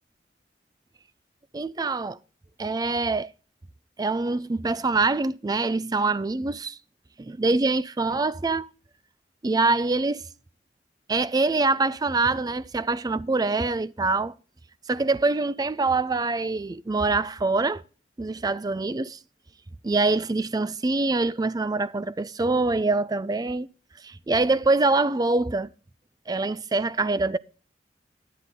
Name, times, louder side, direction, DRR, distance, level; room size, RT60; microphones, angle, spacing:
voice 1, 1.5-2.2 2.6-3.3 4.0-6.8 7.2-8.7 9.4-10.2 11.1-14.3 14.9-17.8 18.2-19.2 19.8-23.7 24.0-25.7 26.3-27.4, right 3 dB, 20° right, 0.4 m, -24 dB
12.0 x 8.3 x 3.7 m
head